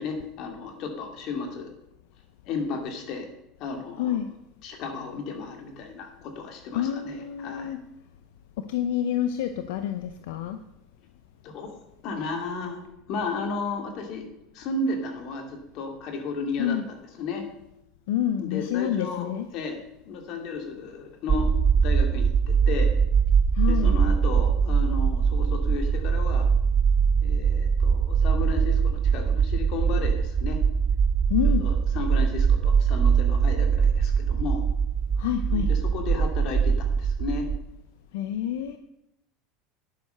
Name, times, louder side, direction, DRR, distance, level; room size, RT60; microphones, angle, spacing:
voice 1, 0.0-1.7 2.4-3.3 3.6-4.2 4.6-7.7 11.4-12.8 13.1-14.3 14.5-17.5 18.4-19.8 20.0-21.5 21.8-22.9 23.7-26.5 27.2-30.6 31.4-34.6 35.5-37.5, left 4 dB, 60° left, 4 dB, 2.3 m, -33 dB
voice 2, 4.0-4.3 6.7-7.8 8.6-10.6 16.6-16.8 18.1-19.5 23.5-23.9 31.3-31.6 35.2-35.7 38.1-38.8, left 10 dB, 80° left, 9 dB, 0.6 m, -28 dB
sound 1, 21.3-37.6, right 6 dB, 30° right, 0.4 m, -22 dB
10.0 x 6.6 x 6.7 m, 0.83 s
supercardioid pair, 100°, 0 cm